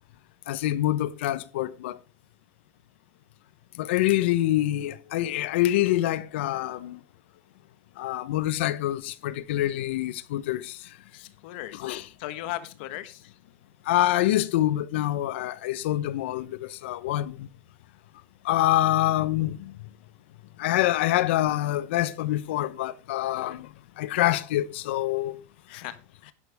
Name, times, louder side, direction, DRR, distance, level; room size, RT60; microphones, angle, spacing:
voice 1, 0.5-2.0 3.8-7.0 8.0-10.8 11.7-12.1 13.9-17.5 18.4-19.7 20.6-23.7 24.0-25.3, left 14 dB, 80° left, 0.9 m, -26 dB
voice 2, 11.1-11.9 12.2-13.3 25.7-26.3, left 14 dB, 60° left, 1.4 m, -38 dB
12.0 x 10.5 x 3.6 m
supercardioid pair, 175°, 6 cm